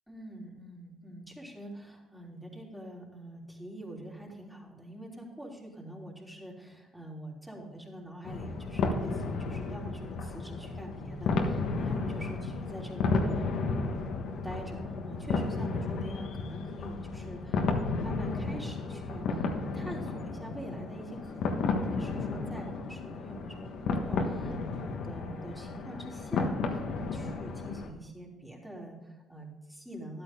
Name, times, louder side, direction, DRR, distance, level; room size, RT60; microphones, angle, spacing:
voice 1, 0.1-14.1 14.4-30.2, right 1 dB, 5° right, -2 dB, 3.4 m, -45 dB
sound 1, 8.2-27.9, left 3 dB, 70° left, 1.4 m, -33 dB
12.0 x 8.9 x 3.7 m, 1.1 s
supercardioid pair, 70°, 0 cm